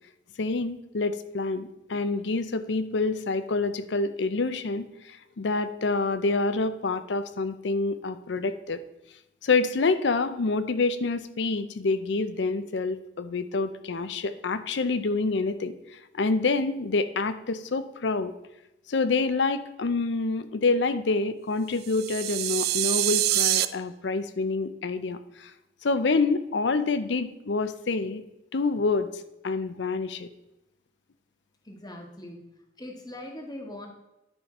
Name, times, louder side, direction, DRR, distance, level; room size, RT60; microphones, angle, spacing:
voice 1, 0.4-8.8 9.4-18.3 18.9-25.5 25.8-28.2 28.5-30.3, left 3 dB, 65° left, 12 dB, 0.6 m, -27 dB
sound 1, 21.8-23.7, right 15 dB, 55° right, 0.3 m, -25 dB
voice 2, 31.6-32.5 32.8-33.9, left 1 dB, 20° left, 2 dB, 1.2 m, -41 dB
9.8 x 5.1 x 4.2 m, 0.92 s
head